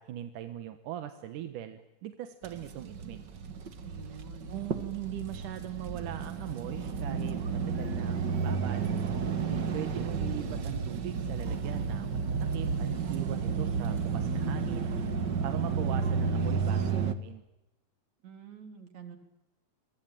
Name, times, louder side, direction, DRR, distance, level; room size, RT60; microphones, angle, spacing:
voice 1, 0.0-3.3 4.5-8.9 9.7-15.0 15.4-17.4, right 12 dB, 85° right, 9 dB, 2.8 m, -40 dB
sound 1, 2.4-17.1, right 5 dB, 45° right, 1.8 m, -32 dB
voice 2, 3.8-4.5 18.2-19.2, right 6 dB, 60° right, 7 dB, 4.7 m, -47 dB
28.0 x 23.0 x 9.0 m, 0.94 s
omnidirectional pair, 3.5 m